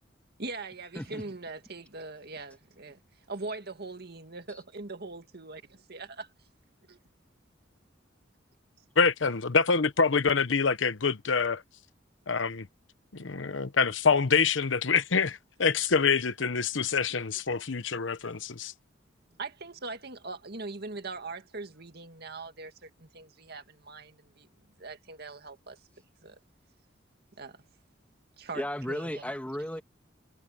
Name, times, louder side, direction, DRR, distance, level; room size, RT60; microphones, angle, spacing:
voice 1, 0.4-3.0 3.3-6.3 6.9-7.0 19.4-24.5 24.8-25.8 26.2-26.4 27.4-27.6 28.4-29.3, right 3 dB, 55° right, 2.0 m, -41 dB
voice 2, 9.0-11.6 12.3-12.7 13.1-18.7, left 5 dB, 80° left, 1.0 m, -26 dB
voice 3, 28.5-29.8, equal, 10° left, 1.8 m, -34 dB
head